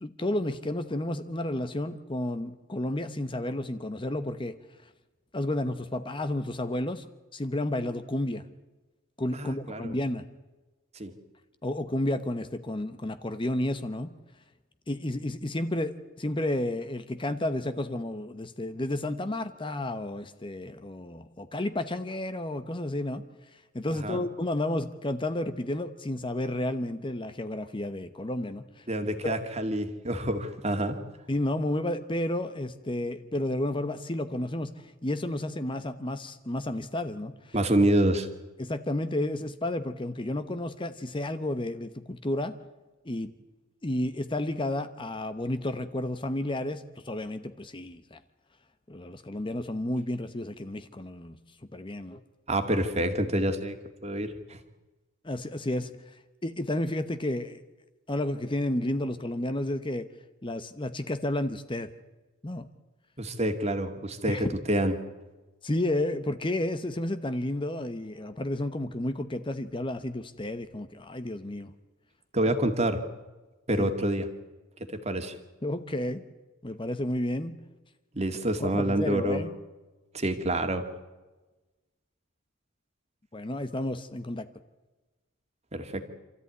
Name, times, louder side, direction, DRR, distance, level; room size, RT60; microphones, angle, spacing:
voice 1, 0.0-4.6 5.3-7.1 7.3-8.4 9.2-10.3 11.6-14.1 14.9-23.2 23.7-29.4 31.3-37.5 38.6-42.6 43.0-43.3 43.8-48.2 48.9-51.4 51.7-52.2 55.2-56.2 56.4-57.6 58.1-60.1 60.4-61.9 62.4-62.7 64.2-64.6 65.6-71.7 73.8-73.9 75.6-76.2 76.6-77.6 78.6-79.5 83.3-84.5, left 1 dB, 25° left, 10 dB, 0.9 m, -31 dB
voice 2, 9.3-10.0 11.0-11.1 23.9-24.2 28.9-31.0 37.5-38.3 52.5-53.8 54.0-54.6 63.2-64.9 72.3-73.0 73.7-74.3 74.9-75.4 78.1-79.4 80.1-80.8 85.7-86.1, right 1 dB, 30° right, 6 dB, 2.1 m, -27 dB
27.5 x 14.0 x 9.4 m, 1.2 s
head